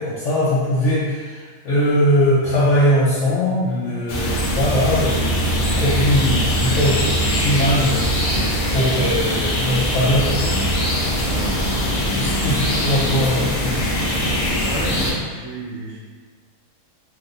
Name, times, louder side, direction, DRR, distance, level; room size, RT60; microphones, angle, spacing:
voice 1, 0.0-10.4 12.2-13.8, equal, 60° left, -10 dB, 0.9 m, -21 dB
sound 1, 4.1-15.1, equal, 85° left, 0.4 m, -21 dB
voice 2, 4.2-4.8 11.2-12.2 14.6-16.0, right 2 dB, 65° right, -4 dB, 1.0 m, -34 dB
sound 2, 8.3-15.2, right 2 dB, 90° right, 1.1 m, -40 dB
3.2 x 2.7 x 2.5 m, 1.5 s
omnidirectional pair, 1.6 m